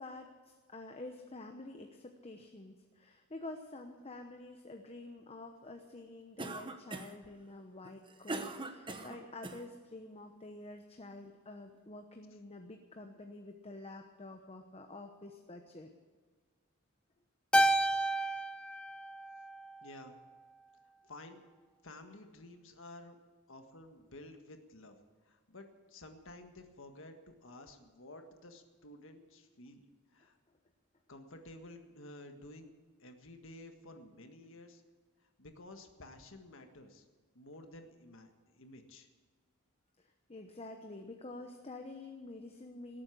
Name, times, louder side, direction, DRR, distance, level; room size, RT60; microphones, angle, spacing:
voice 1, 0.0-15.9 40.0-43.0, left 2 dB, 30° left, 4 dB, 0.9 m, -48 dB
Cough, 6.4-7.3 7.8-9.6, right 2 dB, 25° right, 1.1 m, -41 dB
Keyboard (musical), 17.5-20.0, right 1 dB, 5° left, 0.4 m, -31 dB
voice 2, 19.8-20.2 21.0-21.4 21.8-23.2 23.5-25.0 25.2-29.8 30.1-30.4 31.1-32.7 33.0-34.8 35.4-37.0 37.3-39.1, left 1 dB, 60° left, 6 dB, 1.7 m, -52 dB
18.5 x 8.6 x 8.4 m, 1.5 s
head